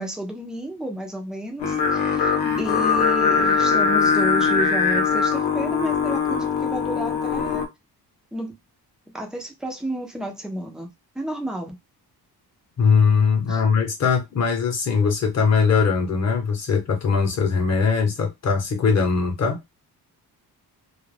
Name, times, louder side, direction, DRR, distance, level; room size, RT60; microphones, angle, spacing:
voice 1, 0.0-7.7 8.3-8.6 9.1-10.9 11.2-11.8 13.5-13.6, right 1 dB, ahead, 0.3 m, -31 dB
Singing, 1.6-7.7, left 5 dB, 85° left, 0.8 m, -21 dB
voice 2, 12.8-19.6, left 5 dB, 40° left, 0.8 m, -20 dB
2.3 x 2.0 x 3.1 m
wide cardioid pair, 170°, 41 cm